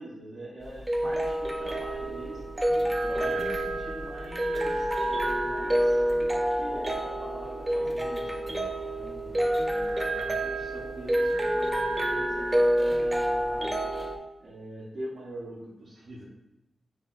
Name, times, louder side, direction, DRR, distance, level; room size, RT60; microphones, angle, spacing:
voice 1, 0.0-2.4 3.0-6.0 6.5-8.6 9.6-13.7 14.4-16.2, right 1 dB, 50° right, -8 dB, 1.1 m, -43 dB
sound 1, 0.6-14.2, right 1 dB, 15° right, 0.5 m, -28 dB
voice 2, 2.7-3.6 4.6-4.7 8.9-9.5, left 1 dB, 35° left, -1 dB, 0.8 m, -46 dB
5.5 x 3.3 x 2.5 m, 0.89 s
wide cardioid pair, 115°, 0 cm